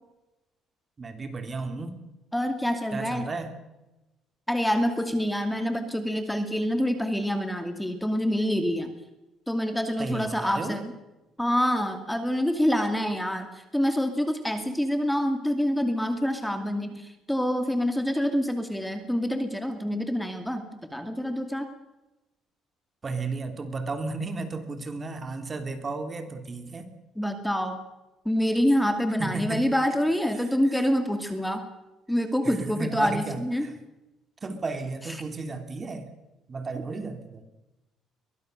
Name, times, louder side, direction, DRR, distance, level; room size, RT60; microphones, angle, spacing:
voice 1, 1.0-2.0 2.9-3.6 10.0-10.8 23.0-26.9 29.2-29.7 30.4-30.8 32.4-33.8 34.4-36.1 36.5-37.4, right 3 dB, 30° right, 8 dB, 3.1 m, -34 dB
voice 2, 2.3-3.2 4.5-8.9 9.5-10.9 11.4-21.7 27.2-27.8 28.2-31.6 32.1-33.7, equal, 5° left, 7 dB, 2.5 m, -26 dB
23.0 x 20.0 x 6.8 m, 0.98 s
cardioid pair, 110°, 0 cm